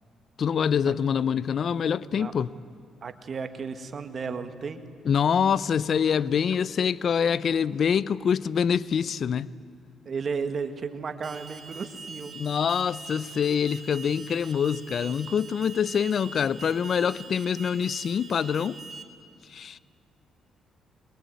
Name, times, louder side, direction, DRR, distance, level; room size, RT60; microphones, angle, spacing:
voice 1, 0.4-2.5 5.1-9.5 12.3-18.8 19.5-19.8, left 7 dB, 55° left, 0.5 m, -25 dB
voice 2, 3.0-4.8 10.1-12.4, right 5 dB, 45° right, 1.8 m, -34 dB
Alarm, 11.2-19.0, right 4 dB, 30° right, 2.7 m, -43 dB
23.0 x 21.0 x 9.4 m
cardioid pair, 90°, 0 cm